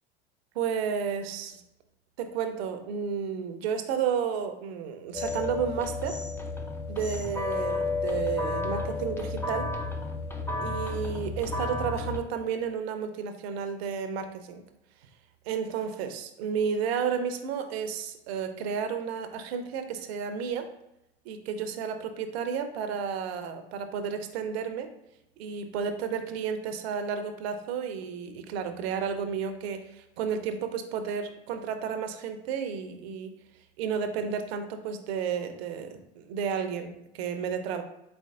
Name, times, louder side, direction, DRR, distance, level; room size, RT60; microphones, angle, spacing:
voice 1, 0.5-1.6 2.2-6.2 6.9-9.7 10.6-14.6 15.5-20.7 21.2-24.9 25.4-33.3 33.8-37.8, right 7 dB, 70° right, 8 dB, 0.6 m, -32 dB
sound 1, 5.1-12.2, left 3 dB, 10° left, 0.4 m, -32 dB
4.2 x 3.9 x 2.4 m, 0.88 s
hypercardioid pair, 90°, 32 cm